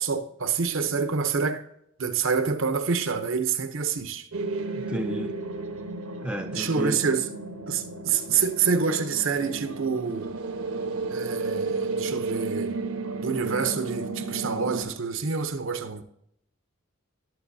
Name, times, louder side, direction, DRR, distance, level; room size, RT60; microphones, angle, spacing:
voice 1, 0.0-1.6 2.0-4.3 6.5-7.3 7.7-10.4 11.1-12.8 13.2-16.0, right 5 dB, 60° right, 0.7 m, -27 dB
sound 1, 4.3-14.8, right 3 dB, 80° right, 1.1 m, -33 dB
voice 2, 4.7-5.3 6.2-7.0, equal, 5° right, 0.4 m, -32 dB
19.5 x 7.7 x 2.7 m
head